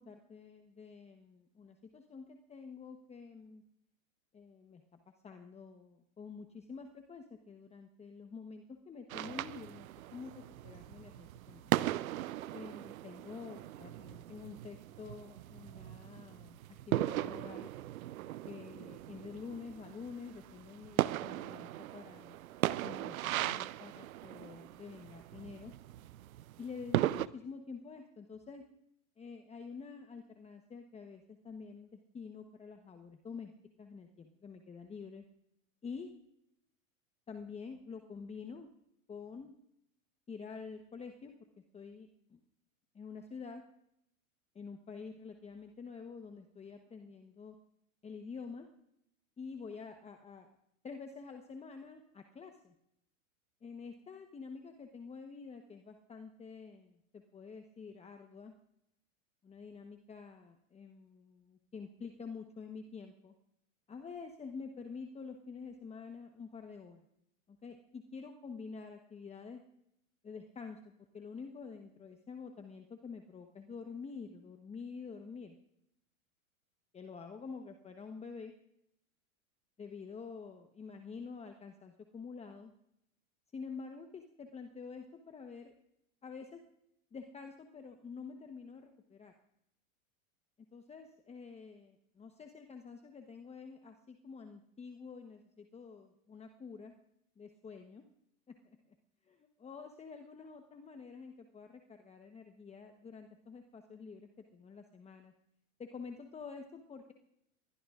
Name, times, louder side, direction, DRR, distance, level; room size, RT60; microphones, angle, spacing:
voice 1, 0.0-3.6 4.3-11.7 12.5-17.7 18.4-22.4 22.8-25.7 26.6-28.6 29.2-33.5 33.8-35.2 35.8-36.1 37.3-38.7 39.1-39.5 40.3-41.5 41.7-42.4 42.9-43.6 44.5-47.5 48.0-48.7 49.4-50.5 50.8-52.7 53.6-58.5 59.4-63.3 63.9-67.0 67.5-69.6 70.2-75.6 76.9-78.5 79.8-82.7 83.5-85.7 86.2-86.6 87.1-89.3 90.7-96.9 97.4-98.0 98.5-98.8 99.2-105.3 105.8-107.1, left 5 dB, 15° left, 5 dB, 1.1 m, -48 dB
sound 1, 9.1-27.3, right 14 dB, 80° right, 0.6 m, -38 dB
25.5 x 21.0 x 2.5 m, 0.79 s
hypercardioid pair, 110°, 41 cm